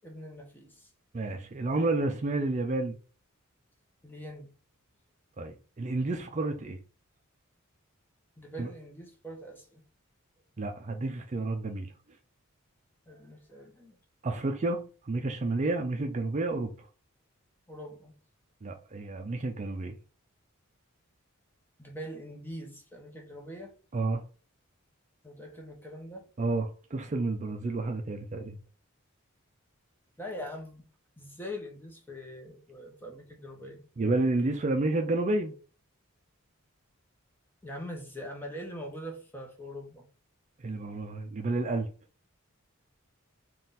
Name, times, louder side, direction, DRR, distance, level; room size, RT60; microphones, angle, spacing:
voice 1, 0.0-0.9 4.0-4.5 8.4-9.8 13.1-14.0 17.7-18.1 21.8-23.7 25.2-26.3 30.2-30.9 31.2-33.8 37.6-40.1, equal, 10° left, 0.9 m, -43 dB
voice 2, 1.1-3.0 5.4-6.8 8.6-8.7 10.6-11.9 14.2-16.7 18.6-20.0 23.9-24.2 26.4-28.6 34.0-35.5 40.6-41.9, right 2 dB, 35° right, 0.4 m, -30 dB
3.8 x 2.5 x 4.0 m
head